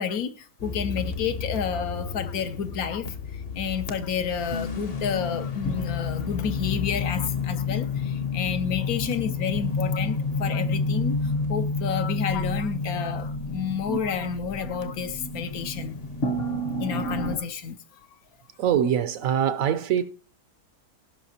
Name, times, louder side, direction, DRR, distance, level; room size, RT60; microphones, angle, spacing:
voice 1, 0.0-16.0 16.8-18.0, left 7 dB, 75° left, 1.1 m, -30 dB
sound 1, 0.6-17.4, left 3 dB, 45° left, 1.0 m, -30 dB
voice 2, 18.6-20.0, right 9 dB, 70° right, 1.0 m, -23 dB
17.0 x 5.7 x 2.8 m
omnidirectional pair, 1.7 m